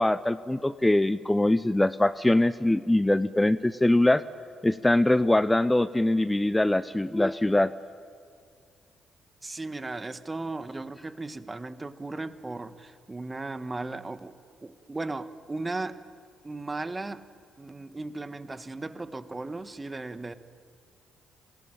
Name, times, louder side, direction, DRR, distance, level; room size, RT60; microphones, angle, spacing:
voice 1, 0.0-4.2 4.6-7.7, left 1 dB, 10° left, 15 dB, 0.7 m, -23 dB
voice 2, 9.4-14.3 14.6-16.0 16.4-17.3 17.6-20.3, right 2 dB, 25° right, 12 dB, 1.5 m, -36 dB
26.5 x 19.5 x 9.0 m, 2.1 s
hypercardioid pair, 45°, 0 cm